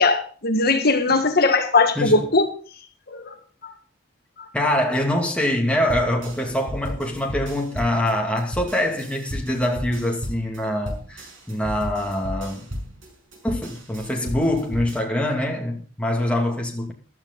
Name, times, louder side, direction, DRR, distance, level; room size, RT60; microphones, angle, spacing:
voice 1, 0.0-2.5 3.1-3.3 3.6-3.7, left 3 dB, 50° left, 1.7 m, -19 dB
voice 2, 2.0-2.3 4.5-12.7 13.4-16.9, left 1 dB, 5° left, 2.5 m, -24 dB
sound 1, 5.9-15.0, equal, 70° right, 6.0 m, -34 dB
15.0 x 12.5 x 4.1 m
head